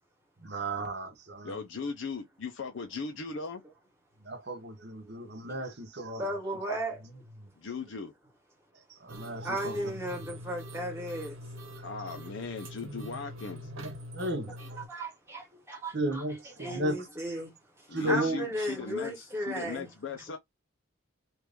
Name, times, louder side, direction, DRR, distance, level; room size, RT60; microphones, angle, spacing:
voice 1, 0.4-1.6 4.2-6.2 7.4-7.5 8.7-9.8 10.1-10.2 12.8-13.2 13.8-14.8 15.9-17.1 17.9-18.4, right 1 dB, 55° right, 0.9 m, -35 dB
voice 2, 1.4-3.6 7.6-8.1 11.8-13.7 17.9-20.4, left 5 dB, 65° left, 0.5 m, -38 dB
voice 3, 6.2-7.0 9.4-11.4 14.9-16.2 16.6-19.9, right 1 dB, 10° right, 1.1 m, -35 dB
sound 1, 9.1-14.9, equal, 90° right, 1.3 m, -44 dB
3.0 x 2.5 x 3.3 m
head